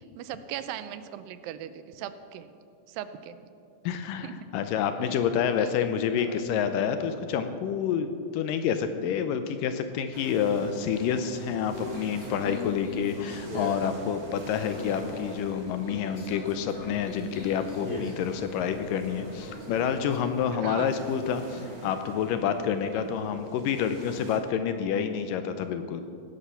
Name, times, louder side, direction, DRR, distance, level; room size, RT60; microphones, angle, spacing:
voice 1, 0.2-2.5 2.9-3.4 4.2-4.3 5.6-5.7 6.2-6.4 20.6-20.9 22.9-23.1, right 11 dB, 85° right, 12 dB, 2.4 m, -39 dB
voice 2, 3.9-26.0, left 7 dB, 80° left, 8 dB, 2.2 m, -28 dB
sound 1, 10.1-24.4, right 2 dB, 35° right, 1.5 m, -46 dB
Conversation, 11.7-20.5, left 2 dB, 25° left, 1.2 m, -40 dB
17.0 x 9.9 x 5.7 m, 2.5 s
omnidirectional pair, 4.1 m